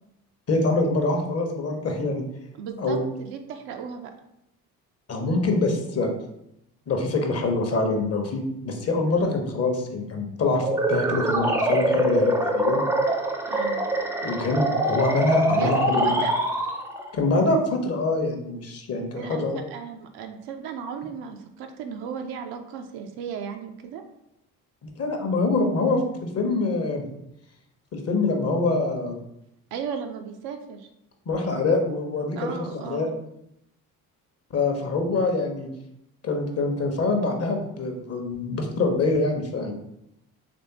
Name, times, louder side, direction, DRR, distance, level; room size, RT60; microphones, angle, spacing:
voice 1, 0.5-2.2 2.8-3.0 5.1-6.1 6.9-12.8 14.2-16.1 17.1-19.6 24.8-27.0 27.9-29.2 31.3-33.1 34.5-35.7 36.2-39.7, left 3 dB, 30° left, 4 dB, 0.8 m, -25 dB
voice 2, 2.6-4.1 13.5-13.8 15.4-16.4 19.1-24.0 29.7-30.9 32.4-33.1, right 7 dB, 55° right, 5 dB, 0.5 m, -35 dB
sound 1, 10.6-17.1, right 1 dB, 5° right, 0.3 m, -24 dB
3.4 x 3.2 x 2.8 m, 0.80 s
figure-of-eight pair, 50°, 46 cm